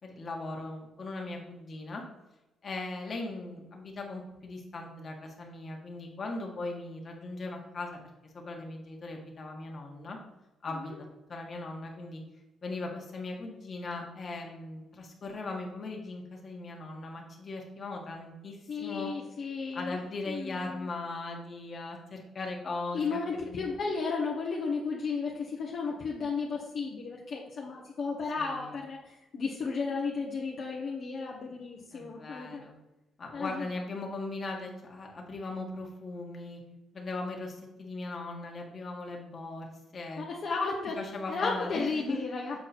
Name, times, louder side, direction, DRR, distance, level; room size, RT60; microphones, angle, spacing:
voice 1, 0.0-2.0 2.6-8.0 8.3-10.2 10.6-10.9 11.3-12.2 12.6-19.1 19.7-23.2 23.5-23.7 28.4-28.8 31.9-32.7 33.2-36.6 36.9-39.7 39.9-40.2 40.9-42.2, left 2 dB, 40° left, 0 dB, 1.8 m, -39 dB
voice 2, 18.7-20.0 20.3-20.9 22.9-32.6 33.3-33.7 40.2-41.0 41.3-42.6, left 4 dB, 60° left, -3 dB, 1.2 m, -34 dB
7.7 x 4.5 x 4.4 m, 0.99 s
cardioid pair, 90°, 0 cm